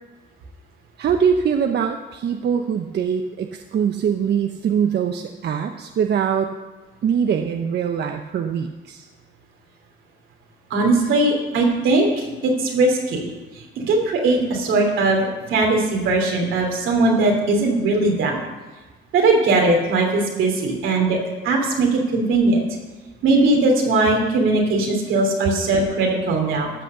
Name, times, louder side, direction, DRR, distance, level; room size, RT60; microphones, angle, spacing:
voice 1, 1.0-6.5 7.0-9.1, right 7 dB, 60° right, 5 dB, 0.8 m, -22 dB
voice 2, 10.7-13.3 13.6-18.4 19.1-21.2 21.4-22.6 23.2-26.7, right 2 dB, 85° right, 1 dB, 2.8 m, -19 dB
13.5 x 6.2 x 6.9 m, 1.2 s
cardioid pair, 90°, 20 cm